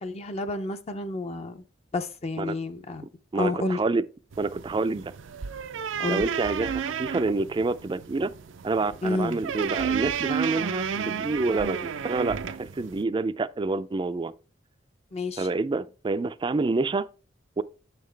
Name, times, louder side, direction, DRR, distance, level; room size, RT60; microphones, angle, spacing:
voice 1, 0.0-1.6 1.9-3.1 3.3-3.8 6.0-6.2 9.0-9.4 15.1-15.5, left 2 dB, 35° left, 0.5 m, -30 dB
voice 2, 3.3-4.0 4.4-5.1 6.1-8.3 8.6-14.3 15.4-17.1 17.6-17.7, right 3 dB, 25° right, 0.3 m, -28 dB
sound 1, 4.3-13.0, right 7 dB, 85° right, 0.5 m, -32 dB
7.2 x 5.7 x 3.3 m
head